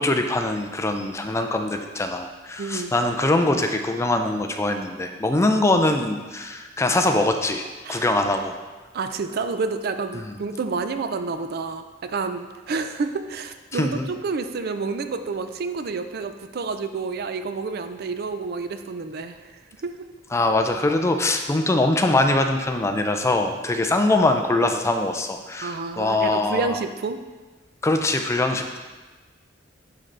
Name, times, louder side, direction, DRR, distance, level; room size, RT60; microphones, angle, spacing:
voice 1, 0.0-8.5 10.1-10.4 13.7-14.1 20.3-26.8 27.8-28.8, left 2 dB, 15° left, 5 dB, 0.4 m, -23 dB
voice 2, 2.6-2.9 7.8-8.1 8.9-19.9 25.6-27.2, right 4 dB, 55° right, 9 dB, 0.4 m, -29 dB
10.5 x 3.8 x 3.3 m, 1.3 s
head